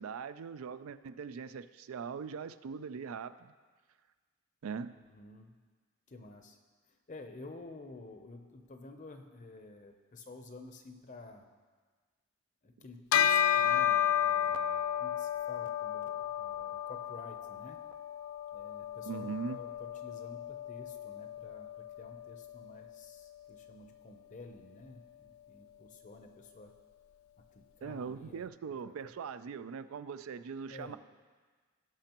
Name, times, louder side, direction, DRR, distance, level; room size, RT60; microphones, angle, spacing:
voice 1, 0.0-3.5 4.6-5.0 19.0-19.6 27.8-31.0, right 6 dB, 80° right, 13 dB, 0.4 m, -41 dB
voice 2, 5.0-5.5 6.1-6.6 7.1-11.5 12.6-17.8 18.5-26.7 27.5-28.5 28.9-29.1 30.7-31.0, left 2 dB, 40° left, 6 dB, 0.6 m, -51 dB
Bell, 13.1-22.8, left 9 dB, 80° left, 0.4 m, -32 dB
17.5 x 5.9 x 3.0 m, 1.5 s
head